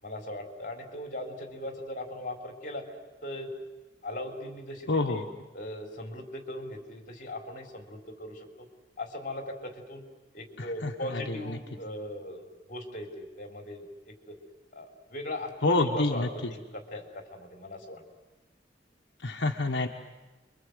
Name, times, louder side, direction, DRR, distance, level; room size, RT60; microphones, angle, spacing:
voice 1, 0.0-2.9 3.2-3.5 4.0-5.2 5.5-8.7 9.0-10.0 10.3-14.4 14.7-18.0, left 1 dB, 45° left, 3 dB, 3.9 m, -39 dB
voice 2, 4.9-5.2 10.6-11.6 15.6-16.3 19.2-19.9, left 2 dB, 80° left, 2 dB, 1.3 m, -28 dB
29.0 x 23.5 x 8.1 m, 1.1 s
head